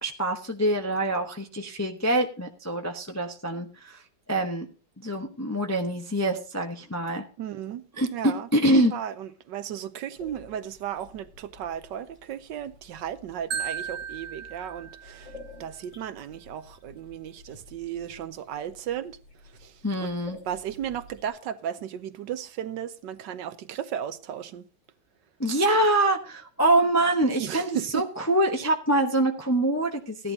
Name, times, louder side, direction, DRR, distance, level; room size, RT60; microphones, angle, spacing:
voice 1, 0.0-4.0 4.3-4.7 5.0-7.2 8.0-8.9 19.8-20.4 25.4-30.3, right 1 dB, 15° left, 0.5 m, -25 dB
voice 2, 7.4-7.8 8.1-8.5 8.9-15.3 15.6-19.2 19.6-19.7 20.0-20.1 20.5-24.6 27.4-28.0, right 10 dB, 70° right, 1.3 m, -35 dB
sound 1, 10.2-21.3, left 3 dB, 85° left, 6.9 m, -51 dB
Marimba xylophone, 13.5-15.6, right 7 dB, 50° right, 1.1 m, -35 dB
15.5 x 11.0 x 2.7 m
omnidirectional pair, 2.1 m